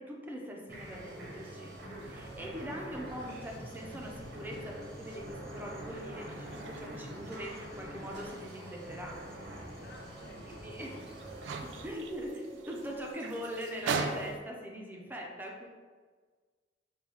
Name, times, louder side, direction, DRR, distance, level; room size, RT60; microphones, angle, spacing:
voice 1, 0.0-9.2 10.6-11.0 11.6-15.7, equal, 10° right, -1 dB, 0.5 m, -42 dB
sound 1, 0.7-11.9, right 1 dB, 65° right, 0.9 m, -45 dB
sound 2, 0.7-14.4, right 4 dB, 90° right, 0.3 m, -44 dB
sound 3, 1.9-13.1, right 2 dB, 25° left, 0.8 m, -54 dB
voice 2, 9.8-10.8, left 2 dB, 65° left, 1 dB, 0.5 m, -53 dB
5.4 x 2.2 x 3.0 m, 1.5 s
head